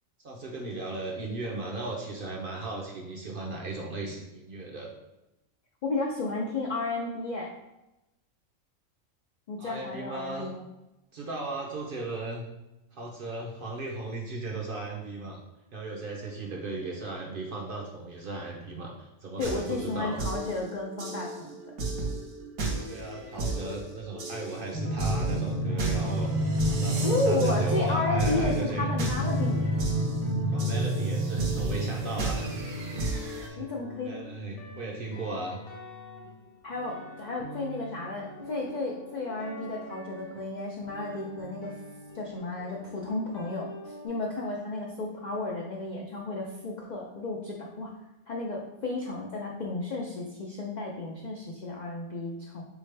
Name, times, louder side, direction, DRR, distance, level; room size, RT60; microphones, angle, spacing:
voice 1, 0.2-4.9 9.6-10.5 11.1-12.5 12.9-15.4 15.7-18.9 19.2-20.2 22.9-26.3 26.7-28.9 30.5-32.5 33.4-33.6 34.0-35.6, right 2 dB, 55° right, -1 dB, 0.6 m, -36 dB
voice 2, 5.8-7.5 9.5-10.6 19.4-21.6 27.0-29.7 33.6-34.2 36.6-41.7 42.1-47.9 48.3-52.6, left 2 dB, 90° left, -2 dB, 0.4 m, -33 dB
sound 1, 19.4-33.5, right 3 dB, 85° right, 1.3 m, -35 dB
sound 2, 24.5-44.1, left 3 dB, 35° left, 0.6 m, -44 dB
sound 3, 24.7-32.9, right 1 dB, 10° right, 0.4 m, -29 dB
4.1 x 3.5 x 3.2 m, 0.94 s
omnidirectional pair, 1.4 m